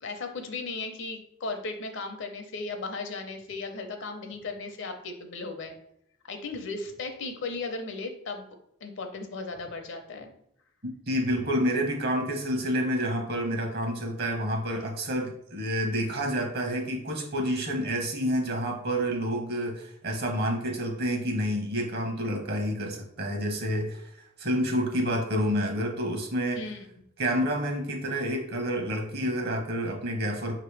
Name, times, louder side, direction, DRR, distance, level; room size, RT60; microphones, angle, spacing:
voice 1, 0.0-5.7 6.2-8.6 8.8-10.3 26.5-26.9, left 3 dB, 60° left, 5 dB, 0.6 m, -36 dB
voice 2, 10.8-26.6 27.2-30.6, equal, 50° right, 1 dB, 1.0 m, -29 dB
5.2 x 2.9 x 3.3 m, 0.75 s
head